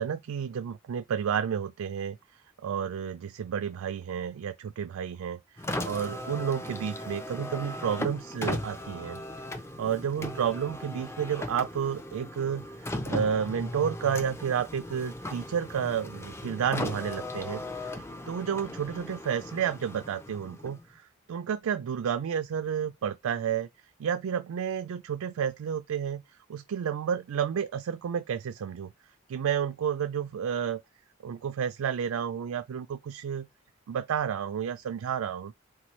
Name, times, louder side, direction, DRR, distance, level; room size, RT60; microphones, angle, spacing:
voice 1, 0.0-2.2 2.6-9.2 9.8-23.7 24.0-26.2 26.5-28.9 29.3-30.8 31.2-33.5 33.9-35.5, right 8 dB, 85° right, 0.4 m, -31 dB
Car, 5.6-21.0, left 1 dB, 10° left, 0.4 m, -37 dB
4.3 x 3.8 x 3.1 m
head